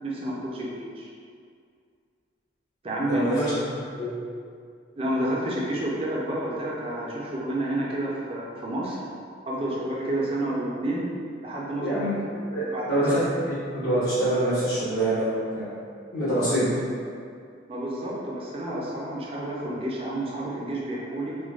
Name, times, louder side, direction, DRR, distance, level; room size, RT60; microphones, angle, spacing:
voice 1, 0.0-1.1 2.8-3.5 5.0-9.0 9.5-11.1 11.4-12.0 12.7-13.1 17.7-21.4, right 1 dB, 30° right, -4 dB, 0.4 m, -29 dB
voice 2, 3.1-3.5 3.9-4.1 11.8-12.1 12.5-15.7 16.1-16.7, right 1 dB, 65° left, -16 dB, 0.8 m, -25 dB
3.2 x 2.2 x 2.3 m, 2.3 s
head